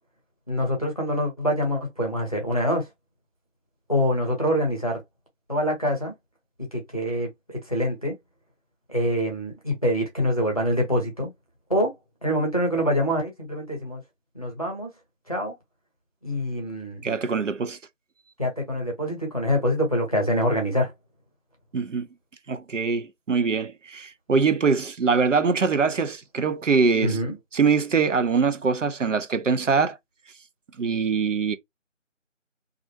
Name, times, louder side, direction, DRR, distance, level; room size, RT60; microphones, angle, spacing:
voice 1, 0.5-2.9 3.9-5.0 5.5-6.1 6.6-7.3 7.7-8.2 8.9-11.3 11.7-11.9 12.2-14.0 14.3-14.9 15.3-15.5 16.2-17.0 18.4-20.9 27.0-27.4, equal, 30° left, 0.7 m, -25 dB
voice 2, 17.0-17.8 21.7-22.1 22.5-27.2 27.5-30.0 30.8-31.6, right 5 dB, 70° right, 0.6 m, -23 dB
2.4 x 2.1 x 2.7 m
figure-of-eight pair, 170°, 39 cm